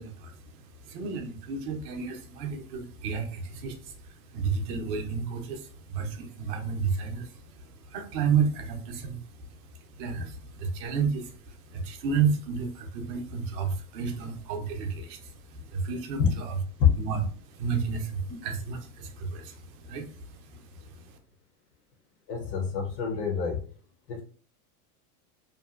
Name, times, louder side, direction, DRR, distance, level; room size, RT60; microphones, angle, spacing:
voice 1, 0.0-16.6 17.0-21.2, right 5 dB, 40° right, 4 dB, 0.6 m, -32 dB
voice 2, 22.3-23.6 24.1-24.2, left 7 dB, 30° left, 1 dB, 0.4 m, -25 dB
2.7 x 2.2 x 2.3 m, 0.43 s
supercardioid pair, 130°, 45 cm